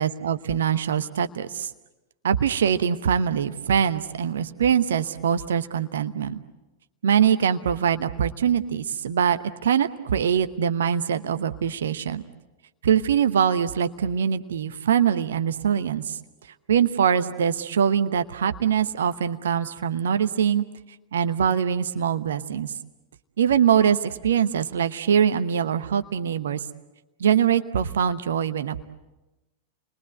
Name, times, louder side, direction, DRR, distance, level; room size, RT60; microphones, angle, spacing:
voice 1, 0.0-1.4 2.2-6.4 7.0-12.2 12.8-16.2 16.7-20.6 21.1-22.7 23.4-26.6 27.2-28.8, right 8 dB, 65° right, 10 dB, 1.0 m, -23 dB
29.5 x 22.0 x 8.0 m, 1.1 s
figure-of-eight pair, 90°, 0 cm